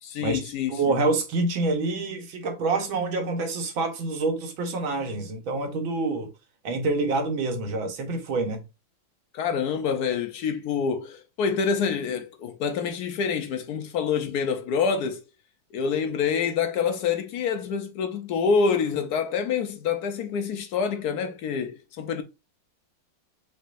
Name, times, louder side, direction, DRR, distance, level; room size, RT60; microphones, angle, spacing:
voice 1, 0.0-1.0 9.3-15.2 15.7-22.2, left 6 dB, 70° left, 1.0 m, -27 dB
voice 2, 0.7-6.3 6.6-8.6, right 3 dB, 80° right, 1.9 m, -27 dB
5.4 x 3.8 x 2.5 m
omnidirectional pair, 2.1 m